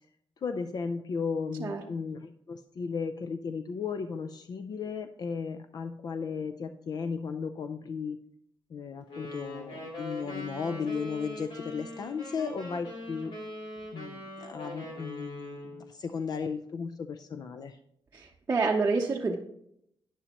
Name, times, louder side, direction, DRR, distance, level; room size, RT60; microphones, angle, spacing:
voice 1, 0.4-8.2 8.7-13.3 13.9-17.8, left 5 dB, 50° left, 8 dB, 0.5 m, -35 dB
sound 1, 9.1-15.9, left 1 dB, 75° left, 3.5 m, -42 dB
voice 2, 18.1-19.3, right 4 dB, 25° right, -1 dB, 0.7 m, -28 dB
11.0 x 10.0 x 3.0 m, 0.74 s
wide cardioid pair, 155°, 9 cm